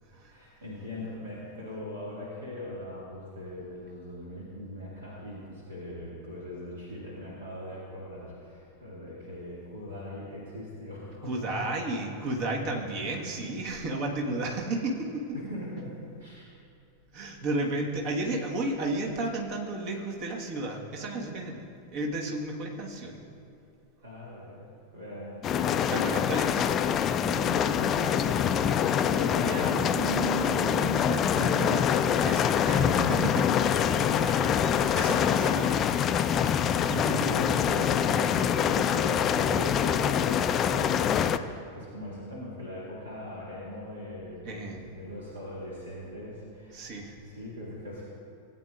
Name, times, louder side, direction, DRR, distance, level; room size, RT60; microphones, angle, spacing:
voice 1, 0.3-11.7 13.0-13.2 15.3-16.5 24.0-25.9 27.3-29.7 30.3-30.5 33.9-34.2 36.3-48.0, left 1 dB, 70° right, -6 dB, 2.0 m, -40 dB
voice 2, 11.2-15.3 17.1-21.6 21.9-23.2 25.9-26.8 29.4-33.4 34.2-36.0 36.3-37.3 44.4-44.8 46.7-47.2, right 2 dB, 45° right, 0 dB, 1.4 m, -33 dB
sound 1, 25.4-41.4, left 8 dB, 30° left, 0.3 m, -25 dB
17.5 x 8.7 x 2.5 m, 2.5 s
figure-of-eight pair, 90°, 0 cm